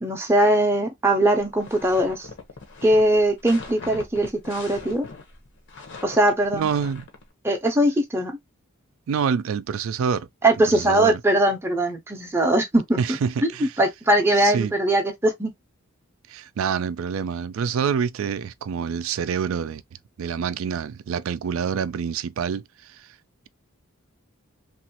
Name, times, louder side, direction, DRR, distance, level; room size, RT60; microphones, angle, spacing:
voice 1, 0.0-2.3 2.8-5.1 6.0-6.7 7.4-8.4 10.4-13.2 13.6-15.5, right 1 dB, 10° right, 0.6 m, -21 dB
sound 1, 1.4-7.2, left 3 dB, 55° left, 0.8 m, -41 dB
voice 2, 6.5-7.0 9.1-10.3 10.6-11.2 13.0-13.7 14.4-14.7 16.3-19.8 20.2-23.1, right 6 dB, 65° right, 0.3 m, -27 dB
3.0 x 2.4 x 2.8 m
head